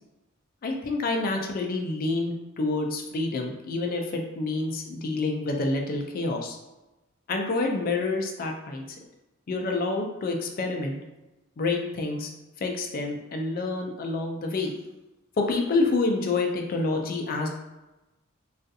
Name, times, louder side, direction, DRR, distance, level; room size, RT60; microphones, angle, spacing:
voice 1, 0.6-6.6 7.3-9.0 9.5-11.0 11.6-12.3 12.6-14.7 15.4-17.5, left 3 dB, 45° left, 2 dB, 0.4 m, -28 dB
2.4 x 2.3 x 2.6 m, 1.0 s
head